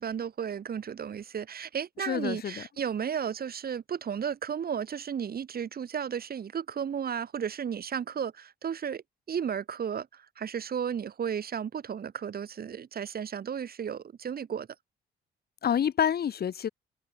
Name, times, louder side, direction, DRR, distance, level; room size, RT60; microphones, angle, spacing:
voice 1, 0.0-9.0 9.3-14.7, right 8 dB, 50° right, 2.4 m, -34 dB
voice 2, 2.0-2.6 15.6-16.7, left 9 dB, 50° left, 1.2 m, -28 dB
cardioid pair, 90°, 20 cm